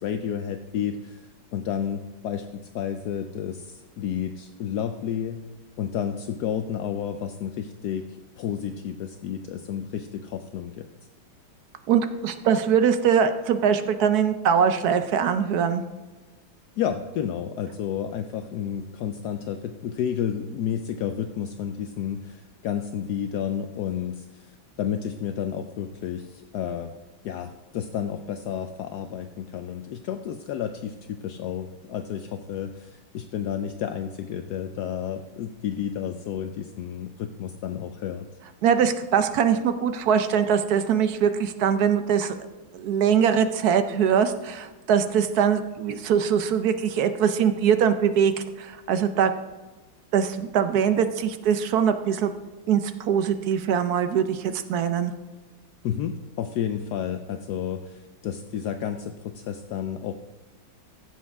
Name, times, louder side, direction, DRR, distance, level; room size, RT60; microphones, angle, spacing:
voice 1, 0.0-5.4 5.8-8.1 8.4-10.9 16.8-26.9 27.2-38.3 55.8-60.1, left 9 dB, 75° left, 7 dB, 0.9 m, -31 dB
voice 2, 11.9-15.8 38.6-42.3 42.7-48.3 48.6-49.3 50.1-52.3 52.7-55.1, right 7 dB, 65° right, 9 dB, 1.0 m, -22 dB
15.5 x 7.5 x 3.5 m, 1.2 s
omnidirectional pair, 2.2 m